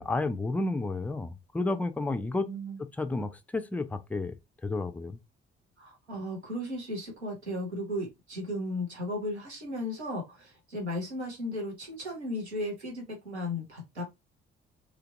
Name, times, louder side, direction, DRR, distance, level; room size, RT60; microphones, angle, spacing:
voice 1, 0.0-2.5 3.0-4.3 4.6-5.2, left 2 dB, 5° left, 0.3 m, -31 dB
voice 2, 2.5-2.8 5.8-14.0, left 1 dB, 90° right, 0.7 m, -35 dB
3.0 x 2.5 x 2.5 m
figure-of-eight pair, 40°, 32 cm